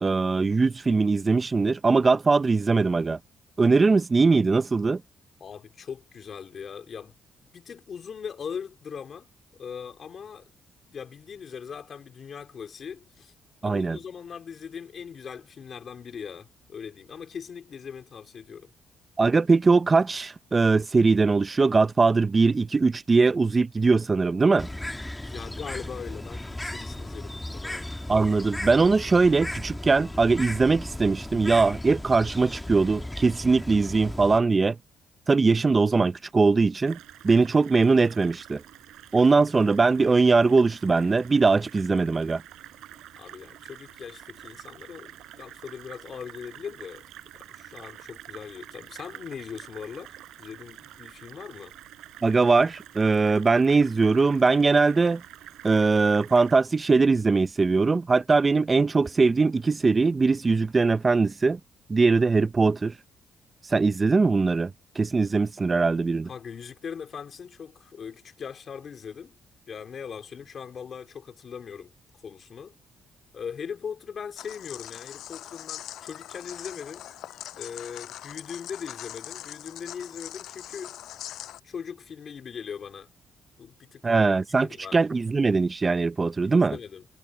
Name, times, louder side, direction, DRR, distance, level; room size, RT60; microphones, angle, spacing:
voice 1, 0.0-3.2 3.6-5.0 13.6-14.0 19.2-24.7 28.1-34.8 35.3-37.0 37.2-38.6 39.1-42.4 52.2-55.2 55.6-61.6 61.9-62.9 63.7-64.7 65.0-66.3 84.0-86.8, right 4 dB, 30° right, 0.5 m, -21 dB
voice 2, 5.4-7.2 7.5-9.3 9.6-10.5 10.9-13.3 13.6-18.7 25.2-27.9 43.2-47.1 47.3-51.8 66.2-69.3 69.7-71.9 72.2-72.8 73.3-77.1 77.6-81.0 81.6-83.1 83.6-85.0 86.4-87.1, left 7 dB, 50° left, 3.8 m, -40 dB
Bird, 24.6-34.4, left 1 dB, 10° left, 2.3 m, -36 dB
sound 1, 36.8-56.6, right 13 dB, 85° right, 6.2 m, -47 dB
sound 2, 74.4-81.6, left 12 dB, 80° left, 5.5 m, -41 dB
cardioid pair, 90°, 0 cm